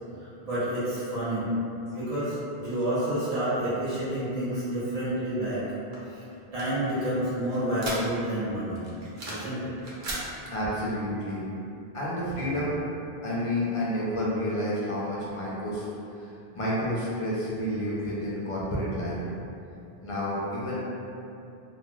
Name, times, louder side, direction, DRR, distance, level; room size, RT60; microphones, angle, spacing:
voice 1, 0.2-1.5 1.9-5.6 6.1-6.2 6.5-8.9 9.3-9.7 12.3-12.5, right 1 dB, 40° right, -13 dB, 1.1 m, -29 dB
sound 1, 5.9-8.4 8.8-9.5 9.8-10.2, right 1 dB, 60° right, 0.7 m, -37 dB
voice 2, 10.5-11.5 11.9-12.8 13.2-15.9 16.2-16.3 16.5-19.2 20.0-20.8, equal, 50° left, -7 dB, 0.4 m, -30 dB
3.1 x 2.2 x 2.3 m, 2.7 s
omnidirectional pair, 1.0 m